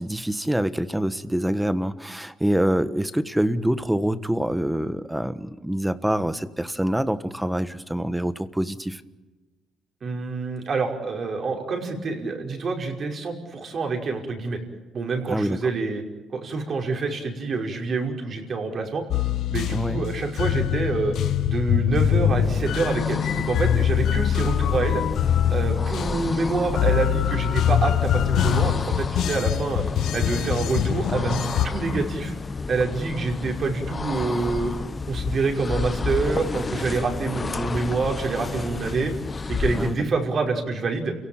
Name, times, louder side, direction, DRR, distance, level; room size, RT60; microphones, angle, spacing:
voice 1, 0.0-9.0 15.3-15.6 19.7-20.0 39.7-40.0, right 1 dB, 5° right, 13 dB, 1.4 m, -25 dB
voice 2, 10.0-14.6 14.9-16.0 16.3-19.0 19.5-21.1 21.4-25.0 25.5-29.8 30.1-32.3 32.7-34.7 35.1-39.1 39.5-41.2, right 4 dB, 50° right, 3 dB, 5.5 m, -27 dB
sound 1, 19.1-31.7, left 10 dB, 75° left, 1.0 m, -24 dB
sound 2, 22.3-40.1, left 4 dB, 30° left, 1.0 m, -31 dB
29.5 x 17.5 x 8.9 m, 1.2 s
cardioid pair, 90°, 0 cm